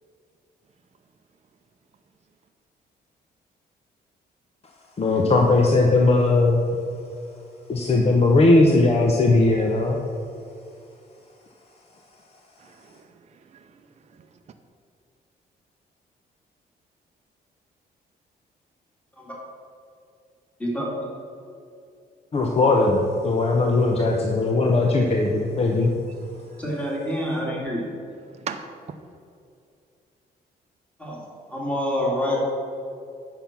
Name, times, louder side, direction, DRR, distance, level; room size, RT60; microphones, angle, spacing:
voice 1, 5.0-6.6 7.7-10.0 22.3-25.9, left 2 dB, 40° left, 1 dB, 0.9 m, -19 dB
voice 2, 12.6-14.4 26.3-26.6 28.3-28.7, right 7 dB, 40° right, 6 dB, 0.6 m, -40 dB
voice 3, 20.6-21.1 26.6-27.9 31.0-32.4, equal, 10° left, -4 dB, 2.5 m, -27 dB
9.0 x 5.8 x 5.9 m, 2.4 s
cardioid pair, 100°, 17 cm